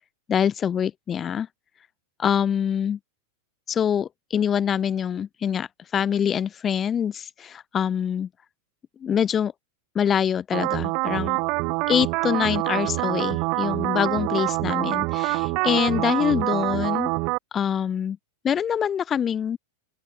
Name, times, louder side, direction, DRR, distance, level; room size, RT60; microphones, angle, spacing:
voice 1, 0.3-1.5 2.2-3.0 3.7-8.3 9.0-9.5 9.9-11.4 11.9-17.1 17.5-18.2 18.4-19.6, left 8 dB, 25° left, 0.5 m, -25 dB
sound 1, 10.5-17.4, right 29 dB, 45° right, 0.4 m, -25 dB
open air
figure-of-eight pair, 90°, 0 cm